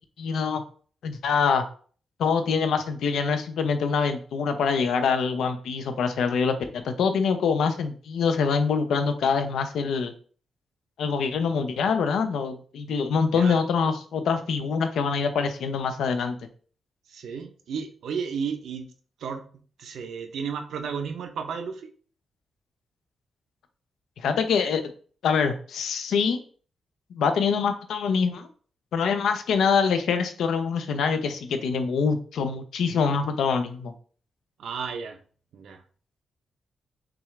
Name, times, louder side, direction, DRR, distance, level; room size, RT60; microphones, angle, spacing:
voice 1, 0.2-0.6 1.0-1.6 2.2-10.1 11.0-16.4 24.2-24.8 25.2-26.4 27.1-28.5 28.9-33.9, left 5 dB, 90° left, 8 dB, 0.6 m, -25 dB
voice 2, 13.3-13.6 17.1-18.9 19.2-19.4 19.8-21.8 34.6-35.2 35.5-35.8, right 6 dB, 70° right, 5 dB, 0.7 m, -33 dB
6.0 x 2.5 x 3.2 m, 0.43 s
wide cardioid pair, 175°, 0 cm